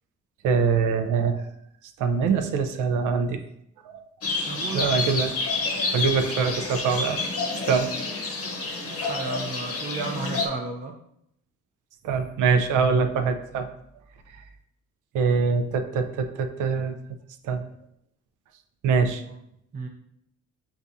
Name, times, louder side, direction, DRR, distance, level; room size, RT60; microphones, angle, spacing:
voice 1, 0.4-1.4 2.0-3.4 3.9-4.0 4.7-5.3 5.7-7.3 7.7-7.9 9.0-9.1 12.0-13.7 15.1-16.9 17.4-17.6 18.8-19.2, right 5 dB, 85° right, 8 dB, 0.5 m, -24 dB
sound 1, 4.2-10.5, left 3 dB, 50° left, 0.8 m, -29 dB
voice 2, 4.5-5.0 8.8-10.9 19.3-19.4 19.7-19.9, right 4 dB, 25° right, 1 dB, 0.5 m, -33 dB
6.9 x 2.4 x 2.6 m, 0.75 s
cardioid pair, 90°, 30 cm